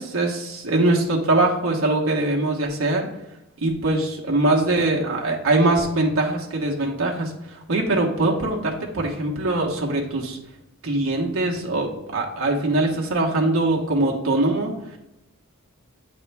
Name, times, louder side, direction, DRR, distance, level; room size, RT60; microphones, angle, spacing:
voice 1, 0.0-3.1 3.6-10.4 10.8-15.0, right 2 dB, 75° right, -2 dB, 1.0 m, -22 dB
7.8 x 3.6 x 3.4 m, 0.95 s
head